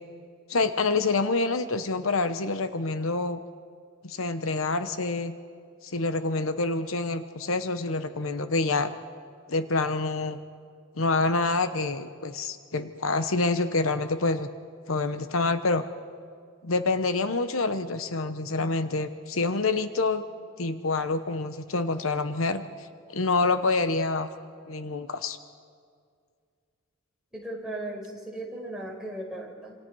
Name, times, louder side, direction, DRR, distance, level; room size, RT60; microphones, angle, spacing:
voice 1, 0.5-3.4 4.0-5.3 5.8-8.9 9.5-10.4 11.0-14.5 14.9-15.8 16.6-20.2 20.6-22.6 23.1-24.3 24.7-25.4, left 3 dB, 85° left, 10 dB, 1.0 m, -27 dB
voice 2, 27.3-29.8, right 1 dB, 5° right, -3 dB, 4.8 m, -37 dB
27.0 x 26.5 x 4.8 m, 2.1 s
head